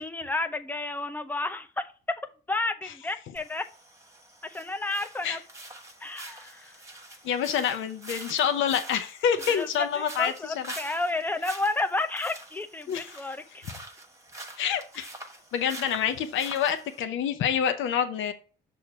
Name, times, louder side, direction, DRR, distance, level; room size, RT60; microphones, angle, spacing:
voice 1, 0.0-2.2 2.5-3.6 4.4-5.4 6.0-6.7 9.5-13.7, left 2 dB, 10° left, 7 dB, 0.6 m, -31 dB
sound 1, 3.3-17.0, right 1 dB, 15° right, 1.2 m, -45 dB
voice 2, 7.2-10.3 12.9-13.1 14.6-15.1 15.5-18.3, left 8 dB, 80° left, 7 dB, 0.7 m, -27 dB
6.4 x 2.7 x 5.6 m, 0.37 s
cardioid pair, 90°, 20 cm